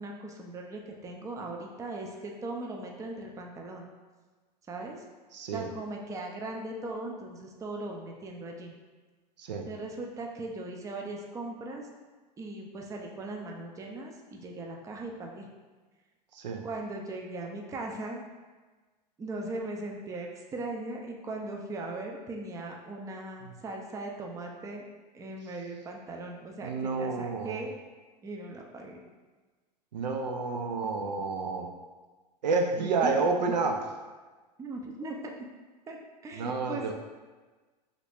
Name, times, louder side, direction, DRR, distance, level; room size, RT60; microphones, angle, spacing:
voice 1, 0.0-3.9 4.7-5.0 5.5-8.8 9.7-11.9 12.4-15.5 16.6-18.2 19.2-24.9 25.1-27.8 28.2-29.0 32.8-33.3 34.6-35.3 35.9-36.0 36.2-36.9, right 2 dB, 15° right, 1 dB, 0.4 m, -39 dB
voice 2, 5.3-5.7 9.4-9.7 16.3-16.7 23.4-23.5 26.6-27.6 29.9-31.7 32.4-33.8 36.3-36.9, right 4 dB, 80° right, 3 dB, 0.5 m, -30 dB
3.0 x 2.5 x 3.4 m, 1.3 s
hypercardioid pair, 90°, 21 cm